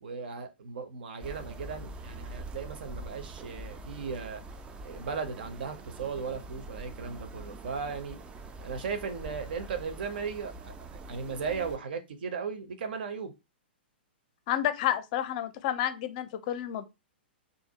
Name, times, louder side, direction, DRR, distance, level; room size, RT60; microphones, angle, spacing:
voice 1, 0.0-4.4 4.8-8.2 8.6-13.3, right 5 dB, 60° right, 0.6 m, -37 dB
sound 1, 1.2-11.8, right 2 dB, 15° right, 0.3 m, -44 dB
voice 2, 14.5-16.9, left 11 dB, 45° left, 0.5 m, -30 dB
2.5 x 2.0 x 2.8 m
figure-of-eight pair, 110°, 6 cm